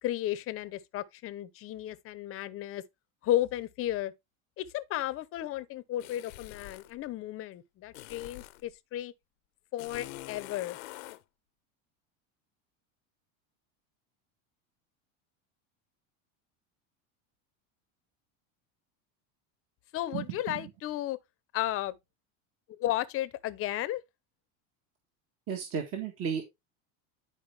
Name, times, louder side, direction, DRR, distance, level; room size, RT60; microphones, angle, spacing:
voice 1, 0.0-2.8 3.2-4.1 4.6-9.1 9.7-10.8 19.9-21.2 21.5-22.0 22.7-24.0, left 13 dB, 35° left, 0.8 m, -33 dB
sound 1, 6.0-6.9 7.9-8.7 9.8-11.2, left 18 dB, 80° left, 0.8 m, -45 dB
voice 2, 20.1-20.7 25.5-26.4, right 7 dB, 35° right, 1.6 m, -34 dB
10.5 x 4.8 x 3.3 m
supercardioid pair, 145°, 40 cm